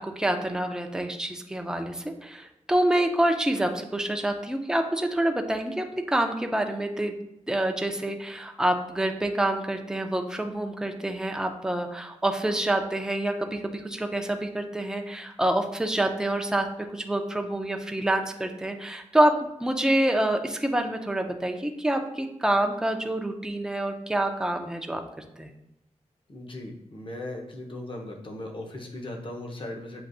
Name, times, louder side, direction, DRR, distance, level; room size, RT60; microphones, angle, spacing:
voice 1, 0.0-7.1 7.5-16.7 16.9-25.0 25.4-25.5, right 1 dB, 5° right, 4 dB, 0.5 m, -27 dB
voice 2, 26.3-30.0, left 1 dB, 45° left, 0 dB, 1.0 m, -38 dB
7.6 x 2.6 x 2.6 m, 0.85 s
cardioid pair, 70°, 12 cm